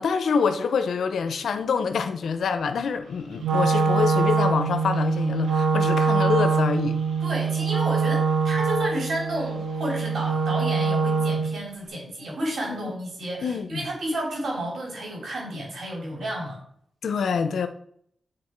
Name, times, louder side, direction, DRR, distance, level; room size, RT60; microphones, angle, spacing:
voice 1, 0.0-7.0 12.7-12.9 13.4-13.9 17.0-17.7, left 6 dB, 80° left, 0.6 m, -26 dB
Wind instrument woodwind instrument, 3.4-11.6, right 5 dB, 90° right, 0.8 m, -23 dB
voice 2, 7.2-16.6, right 1 dB, 75° right, 3.2 m, -31 dB
8.8 x 3.6 x 4.5 m
cardioid pair, 75°, 0 cm